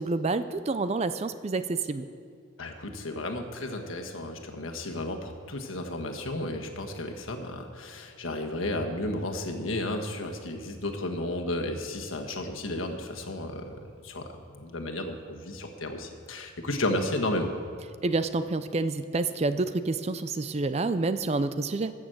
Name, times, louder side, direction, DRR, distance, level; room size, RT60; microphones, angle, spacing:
voice 1, 0.0-2.1 18.0-21.9, right 3 dB, 30° right, 12 dB, 0.4 m, -28 dB
voice 2, 2.6-14.3 14.5-17.5, left 1 dB, 80° left, 3 dB, 1.4 m, -33 dB
14.0 x 6.3 x 7.8 m, 2.3 s
head